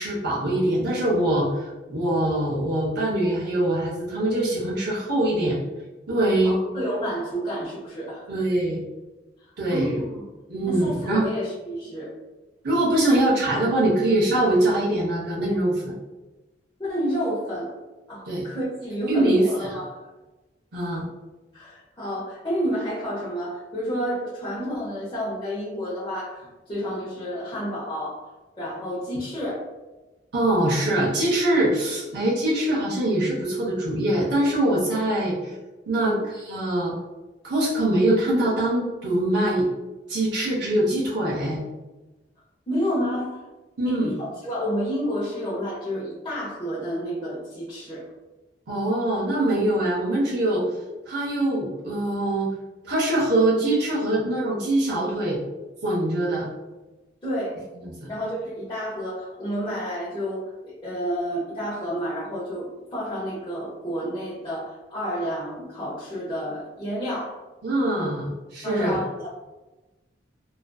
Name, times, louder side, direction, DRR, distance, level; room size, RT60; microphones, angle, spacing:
voice 1, 0.0-5.6 6.1-6.5 8.3-8.8 9.6-10.0 10.5-11.3 12.6-15.9 18.3-18.4 19.1-19.4 20.7-21.1 30.3-35.5 35.9-36.9 37.4-39.7 40.1-41.6 43.8-44.1 48.7-50.6 51.1-52.5 52.8-55.4 55.8-56.5 57.8-58.1 67.6-69.0, right 1 dB, 65° right, -5 dB, 0.6 m, -23 dB
voice 2, 6.4-8.2 9.7-10.2 10.6-12.1 16.8-17.7 18.1-20.0 21.5-28.3 28.6-29.6 35.9-36.2 42.7-43.4 43.8-48.1 57.2-57.6 58.1-67.4 68.6-69.3, equal, 25° left, -10 dB, 0.6 m, -30 dB
2.4 x 2.4 x 2.2 m, 1.1 s
head